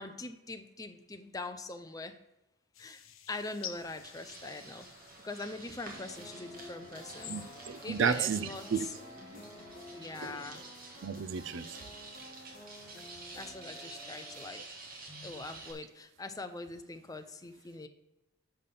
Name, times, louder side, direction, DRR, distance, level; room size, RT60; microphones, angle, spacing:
voice 1, 0.0-2.2 2.8-4.9 5.2-7.4 7.8-8.9 9.2-9.4 9.9-10.6 13.3-14.6 15.1-17.9, left 3 dB, 20° left, 0.6 m, -42 dB
sound 1, 2.7-6.2 6.8-7.9, left 10 dB, 80° left, 0.8 m, -49 dB
sound 2, 3.7-15.7, right 3 dB, 45° right, 1.7 m, -49 dB
sound 3, 5.9-14.5, left 1 dB, 45° left, 3.2 m, -51 dB
voice 2, 7.3-8.9 9.3-9.4 11.0-11.8, right 6 dB, 60° right, 0.4 m, -32 dB
6.8 x 5.7 x 6.8 m
head